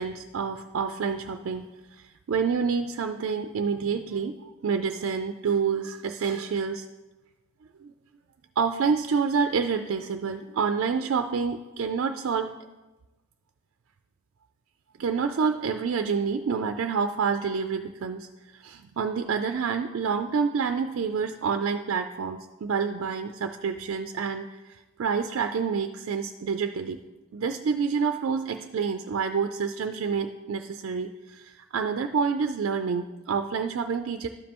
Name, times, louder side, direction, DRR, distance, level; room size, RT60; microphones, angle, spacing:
voice 1, 0.0-4.4 4.6-6.9 7.8-7.9 8.6-12.5 15.0-18.3 18.5-27.0 27.3-34.3, right 5 dB, 70° right, 6 dB, 0.3 m, -28 dB
12.5 x 5.2 x 2.9 m, 1.1 s
head